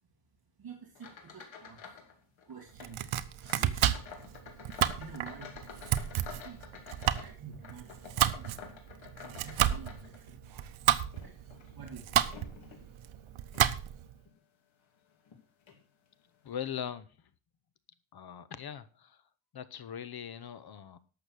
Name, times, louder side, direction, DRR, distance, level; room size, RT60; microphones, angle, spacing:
voice 1, 0.6-2.1 2.4-4.3 4.5-8.7 9.1-12.4, right 6 dB, 50° right, 2 dB, 2.0 m, -50 dB
sound 1, 0.9-2.1 2.4-2.9 3.4-10.5 11.0-12.8 13.5-13.7 14.3-14.4 15.3-15.4 15.7-15.8, left 6 dB, 70° left, 2.8 m, -49 dB
Domestic sounds home sounds, 2.8-14.1, right 11 dB, 85° right, 0.9 m, -31 dB
voice 2, 16.4-17.1 18.1-19.2 19.5-21.0, left 9 dB, 50° left, 15 dB, 0.9 m, -40 dB
11.5 x 7.3 x 6.3 m, 0.38 s
wide cardioid pair, 165°, 47 cm